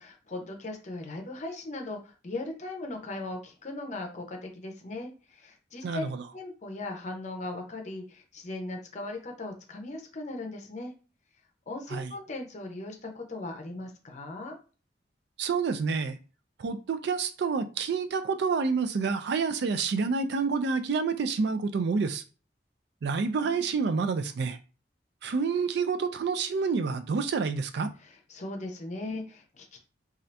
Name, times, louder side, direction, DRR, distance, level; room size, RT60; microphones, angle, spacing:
voice 1, 0.0-6.0 6.3-10.9 11.7-14.6 23.4-23.8 28.0-29.8, left 2 dB, 40° left, 0.6 m, -38 dB
voice 2, 5.8-6.2 11.9-12.1 15.4-16.2 16.6-22.2 23.0-24.6 25.2-27.9, right 5 dB, 65° right, 0.4 m, -28 dB
2.7 x 2.4 x 3.2 m
head